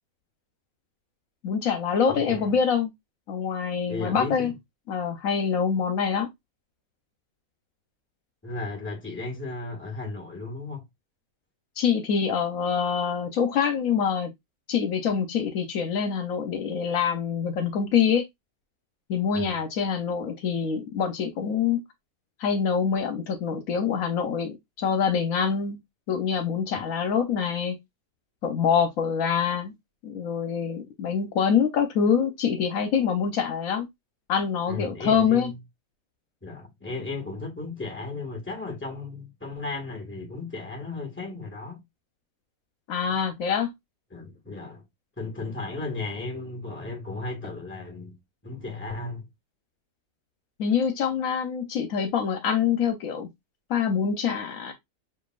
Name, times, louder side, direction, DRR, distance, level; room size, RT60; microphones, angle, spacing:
voice 1, 1.4-2.9 3.3-4.5 4.9-6.3 11.8-14.3 14.7-18.2 19.1-21.8 22.4-25.8 26.1-27.8 28.4-29.7 30.0-33.9 34.3-35.5 42.9-43.7 50.6-53.3 53.7-54.7, left 7 dB, 75° left, 1.1 m, -25 dB
voice 2, 2.1-2.5 3.9-4.6 8.4-10.8 19.3-19.6 34.7-35.6 36.4-41.8 44.1-44.8 45.2-49.3, left 3 dB, 10° left, 1.6 m, -35 dB
6.7 x 2.7 x 2.4 m
omnidirectional pair, 1.5 m